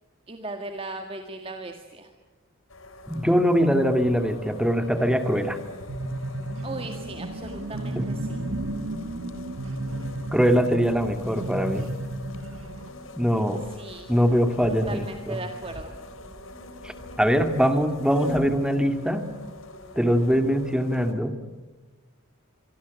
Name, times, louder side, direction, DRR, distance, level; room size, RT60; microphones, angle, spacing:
voice 1, 0.3-2.1 6.6-8.4 13.7-14.1 14.9-15.9, right 2 dB, 25° right, 4 dB, 1.8 m, -37 dB
sound 1, 2.7-21.1, left 2 dB, 70° left, 3.7 m, -43 dB
voice 2, 3.1-5.6 7.9-8.1 10.3-11.9 13.2-13.6 14.1-15.4 16.8-19.3 20.0-21.3, equal, 5° right, 7 dB, 2.2 m, -22 dB
sound 2, 5.9-12.9, right 1 dB, 70° right, 1.8 m, -33 dB
26.0 x 23.5 x 8.3 m, 1.3 s
head